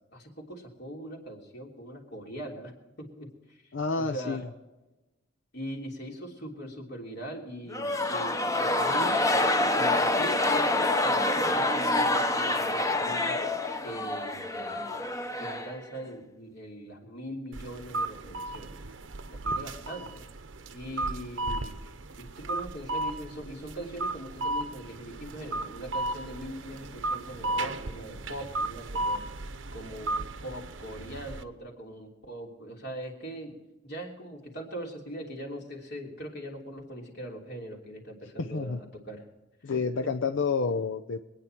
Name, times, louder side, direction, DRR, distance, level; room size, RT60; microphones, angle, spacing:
voice 1, 0.1-2.7 3.0-4.4 5.5-9.3 9.7-13.4 13.8-14.9 15.4-18.7 19.4-20.3 20.7-21.7 22.2-29.3 29.7-33.5 33.8-39.2 39.6-39.8, right 1 dB, 60° left, 0 dB, 3.3 m, -41 dB
voice 2, 3.7-4.4 38.4-38.8 39.6-41.2, left 4 dB, 90° left, 7 dB, 0.6 m, -29 dB
sound 1, 7.7-16.1, left 2 dB, 15° left, 0.8 m, -27 dB
sound 2, 17.5-31.4, right 2 dB, 90° right, 0.9 m, -35 dB
23.5 x 9.7 x 4.5 m, 1.0 s
head